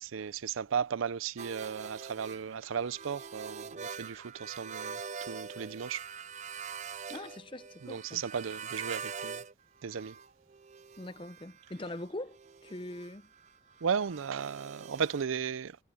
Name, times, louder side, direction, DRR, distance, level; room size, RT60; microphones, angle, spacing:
voice 1, 0.0-6.1 7.8-9.4 9.8-10.2 13.8-15.8, right 7 dB, 85° right, 0.5 m, -35 dB
sound 1, 1.4-9.5 9.8-15.2, right 6 dB, 35° right, 0.4 m, -44 dB
voice 2, 7.1-8.2 11.0-13.3, left 1 dB, 25° left, 0.7 m, -42 dB
head